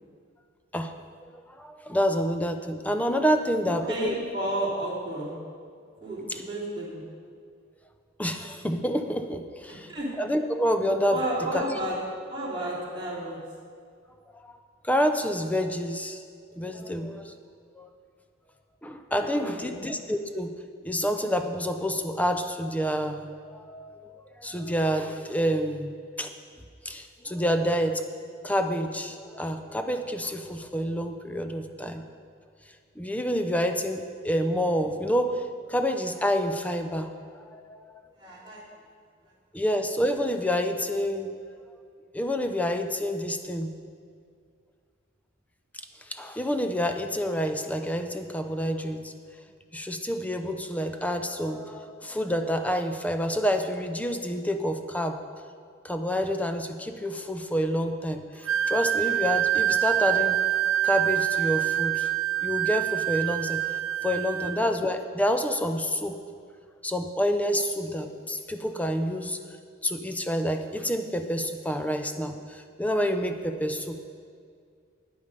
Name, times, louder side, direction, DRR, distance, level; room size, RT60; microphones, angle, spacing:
voice 1, 1.3-4.1 6.3-6.4 8.2-9.9 10.2-11.2 11.5-11.6 14.3-14.5 14.8-16.2 16.6-17.3 17.8-17.9 18.8-20.5 20.8-24.1 24.4-26.3 26.8-32.0 33.0-35.4 35.7-37.1 37.4-37.8 39.5-41.6 42.1-43.7 46.1-49.1 49.7-55.2 55.8-60.4 60.8-62.1 62.4-63.6 64.0-66.2 66.8-69.4 69.8-74.0, equal, 5° left, 7 dB, 0.5 m, -28 dB
voice 2, 3.6-5.3 6.0-7.0 9.7-10.1 11.1-11.9 12.3-13.4 19.3-19.8 38.2-38.6 64.4-64.5, right 1 dB, 25° right, -8 dB, 3.1 m, -32 dB
Wind instrument woodwind instrument, 58.4-64.6, right 12 dB, 75° right, 0.3 m, -26 dB
9.6 x 8.6 x 5.3 m, 2.1 s
head